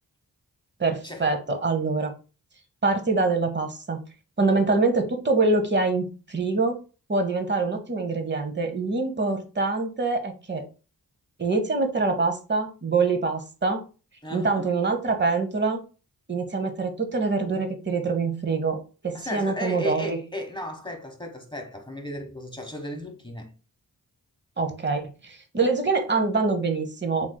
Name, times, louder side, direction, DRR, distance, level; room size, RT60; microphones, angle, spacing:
voice 1, 0.8-2.1 2.8-4.0 4.4-6.8 7.1-10.6 11.4-13.8 14.3-15.8 16.3-20.2 24.6-27.4, right 3 dB, 25° right, 0.8 m, -25 dB
voice 2, 14.2-14.7 19.1-23.5, left 1 dB, 10° left, 0.9 m, -35 dB
3.2 x 3.1 x 2.2 m
cardioid pair, 40°, 40 cm